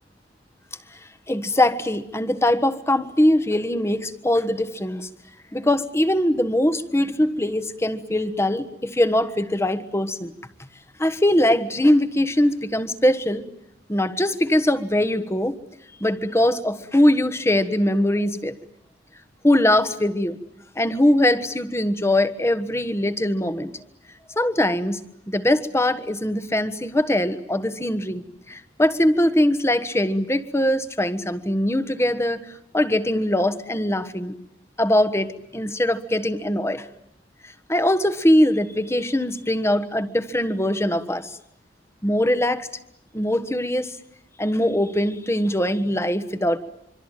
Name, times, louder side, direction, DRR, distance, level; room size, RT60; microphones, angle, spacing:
voice 1, 1.3-5.1 5.5-10.3 11.0-13.4 13.9-15.6 16.0-18.5 19.4-20.4 20.8-23.7 24.3-25.0 25.3-32.4 32.7-34.4 34.8-36.9 37.7-41.4 42.0-42.7 43.1-43.9 44.4-46.6, left 1 dB, 15° left, 12 dB, 1.4 m, -21 dB
25.5 x 24.5 x 9.1 m, 0.77 s
head